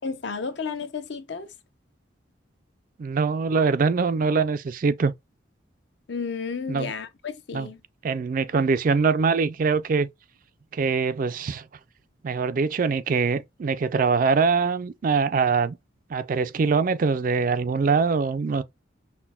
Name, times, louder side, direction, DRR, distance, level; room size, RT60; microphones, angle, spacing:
voice 1, 0.0-1.5 6.1-7.8, left 5 dB, 60° left, 0.6 m, -32 dB
voice 2, 3.0-5.1 6.7-6.9 7.5-7.7 8.0-10.1 10.7-11.6 12.2-15.8 16.1-18.6, right 5 dB, 45° right, 0.3 m, -23 dB
5.7 x 2.1 x 2.3 m
head